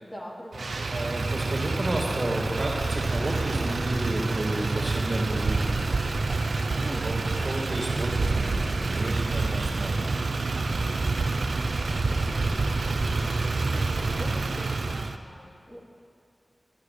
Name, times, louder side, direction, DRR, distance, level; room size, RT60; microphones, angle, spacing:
voice 1, 0.0-1.0 6.8-7.1 11.7-12.8 13.7-15.8, equal, 25° left, -4 dB, 2.9 m, -43 dB
Motor vehicle (road), 0.5-15.2, right 3 dB, 85° right, 0.6 m, -27 dB
voice 2, 0.9-5.8 7.0-10.5, right 1 dB, 50° right, -2 dB, 2.6 m, -32 dB
11.5 x 9.2 x 9.4 m, 2.2 s
wide cardioid pair, 70°, 0 cm